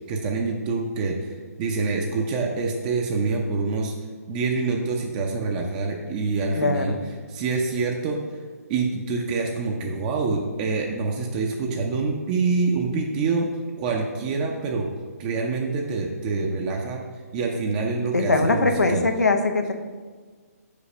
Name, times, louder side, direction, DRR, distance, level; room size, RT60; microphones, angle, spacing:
voice 1, 0.1-3.9 4.3-6.9 7.3-8.2 8.7-13.5 13.8-14.9 15.2-17.0 17.3-19.0, right 4 dB, 30° right, 1 dB, 0.6 m, -26 dB
voice 2, 6.6-7.0 18.1-19.7, left 3 dB, 90° left, 5 dB, 0.8 m, -21 dB
5.2 x 4.1 x 5.5 m, 1.5 s
figure-of-eight pair, 140°, 9 cm